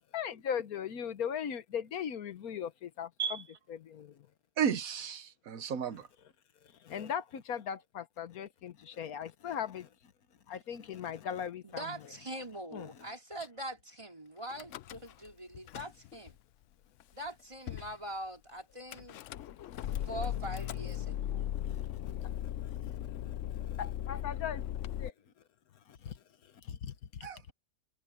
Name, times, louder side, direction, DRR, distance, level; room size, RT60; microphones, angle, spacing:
voice 1, 0.1-4.3 6.8-10.1 10.5-11.8 12.7-13.1 19.8-20.1 21.7-21.8 22.2-22.3 23.1-24.7 25.0-25.1 25.9-27.3, left 8 dB, 85° left, 1.5 m, -39 dB
voice 2, 4.6-6.1 27.2-27.5, right 8 dB, 75° right, 1.3 m, -33 dB
voice 3, 11.6-16.4 17.1-19.4 20.1-21.5, right 1 dB, 20° right, 3.7 m, -43 dB
Car / Engine starting / Idling, 14.5-15.3 15.5-16.3 17.0-17.1 17.3-17.4 17.7-17.9 18.9-25.1, left 11 dB, 65° left, 0.8 m, -38 dB
omnidirectional pair, 1.5 m